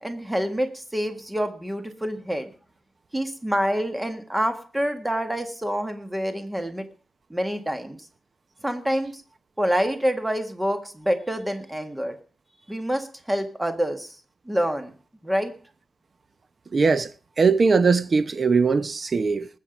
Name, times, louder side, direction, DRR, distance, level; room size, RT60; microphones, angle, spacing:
voice 1, 0.0-2.5 3.1-6.9 7.3-8.0 8.6-9.2 9.6-12.1 12.7-14.2 14.5-14.9 15.2-15.5, equal, 10° right, 1.7 m, -27 dB
voice 2, 16.7-17.1 17.4-19.5, right 4 dB, 45° right, 0.7 m, -20 dB
20.0 x 7.6 x 5.2 m
wide cardioid pair, 135°, 0 cm